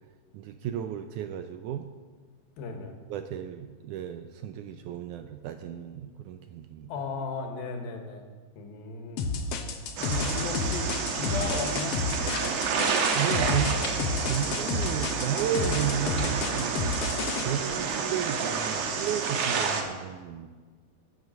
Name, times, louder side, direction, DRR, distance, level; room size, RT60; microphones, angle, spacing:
voice 1, 0.3-1.9 3.1-6.9 13.1-13.7 14.3-17.0 17.4-20.5, right 10 dB, 80° right, 8 dB, 1.9 m, -33 dB
voice 2, 2.6-3.0 6.9-8.2 8.5-9.2 10.0-12.5, left 3 dB, 90° left, 4 dB, 3.2 m, -36 dB
sound 1, 9.2-17.4, left 4 dB, 75° left, 1.5 m, -30 dB
sound 2, 10.0-19.8, right 5 dB, 60° right, 1.9 m, -30 dB
sound 3, 11.1-11.5 11.9-12.5 12.8-12.9 13.3-14.0 14.5-15.2 15.8-16.4 17.1-17.8, left 2 dB, 40° left, 3.1 m, -42 dB
15.5 x 7.9 x 6.5 m, 1.4 s
omnidirectional pair, 4.1 m